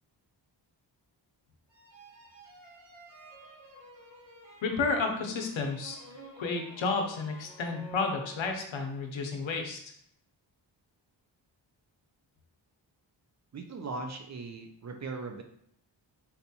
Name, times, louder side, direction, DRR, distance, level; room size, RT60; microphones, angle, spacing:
sound 1, 1.7-8.9, right 2 dB, 70° right, 1.5 m, -51 dB
voice 1, 4.6-6.0 6.4-9.8, left 4 dB, 80° left, 3 dB, 0.7 m, -31 dB
voice 2, 13.5-15.4, right 3 dB, 40° right, 5 dB, 0.4 m, -39 dB
4.0 x 2.2 x 2.7 m, 0.66 s
wide cardioid pair, 100°, 45 cm